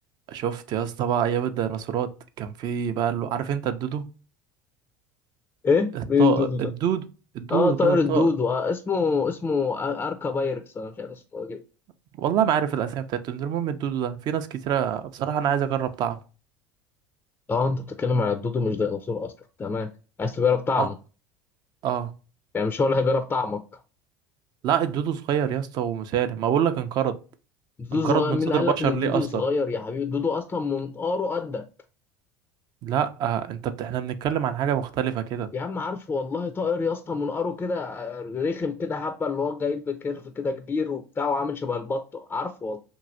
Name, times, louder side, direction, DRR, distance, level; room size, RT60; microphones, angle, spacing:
voice 1, 0.3-2.1 2.4-4.0 5.9-6.5 6.8-7.0 7.3-8.3 12.2-16.2 20.8-20.9 21.8-22.1 24.6-27.2 27.9-29.4 32.8-35.5, right 9 dB, 50° right, 0.4 m, -26 dB
voice 2, 5.6-6.6 7.5-11.6 17.5-19.3 19.6-19.9 20.2-21.0 22.5-23.6 27.8-31.6 35.5-42.8, left 4 dB, 20° left, 0.4 m, -26 dB
3.0 x 2.7 x 2.5 m
hypercardioid pair, 80°, 9 cm